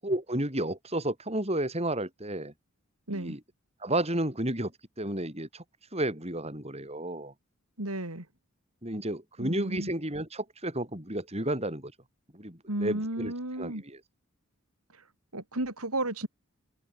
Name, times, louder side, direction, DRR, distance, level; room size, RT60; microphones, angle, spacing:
voice 1, 0.0-2.5 3.1-3.4 3.8-4.7 5.0-5.6 5.9-7.3 8.8-11.9 12.3-14.0, right 1 dB, 30° right, 7.3 m, -32 dB
voice 2, 7.8-8.2 9.4-9.9 12.7-13.8 15.3-16.3, right 1 dB, 85° right, 6.0 m, -33 dB
head